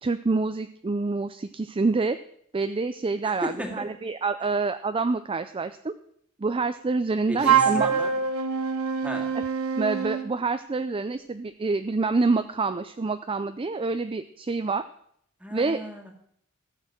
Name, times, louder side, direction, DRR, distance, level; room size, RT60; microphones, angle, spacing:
voice 1, 0.0-2.2 2.5-5.9 6.4-7.9 9.8-14.8 15.5-15.8, right 3 dB, 25° right, 10 dB, 0.4 m, -27 dB
voice 2, 3.2-3.9 7.3-8.1 9.0-9.4 15.4-16.1, equal, 5° right, 1 dB, 2.1 m, -34 dB
Wind instrument woodwind instrument, 7.4-10.3, right 7 dB, 75° right, 1.1 m, -24 dB
15.0 x 6.6 x 7.5 m, 0.69 s
head